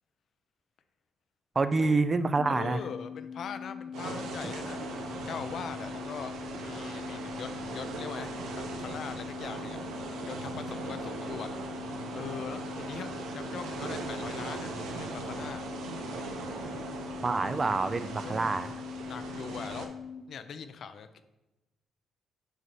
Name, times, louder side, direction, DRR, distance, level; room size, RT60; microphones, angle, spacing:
voice 1, 1.6-2.8 4.4-4.5 17.2-18.7, right 3 dB, 30° right, 11 dB, 0.4 m, -27 dB
voice 2, 2.4-9.8 10.2-11.5 12.1-15.6 18.2-18.6 19.1-19.9 20.3-21.2, left 6 dB, 60° left, 10 dB, 0.5 m, -41 dB
sound 1, 2.4-20.2, left 7 dB, 25° left, 0.8 m, -42 dB
sound 2, 3.9-19.9, right 4 dB, 85° right, 0.8 m, -39 dB
8.0 x 2.7 x 5.9 m, 1.0 s
cardioid pair, 90°, 0 cm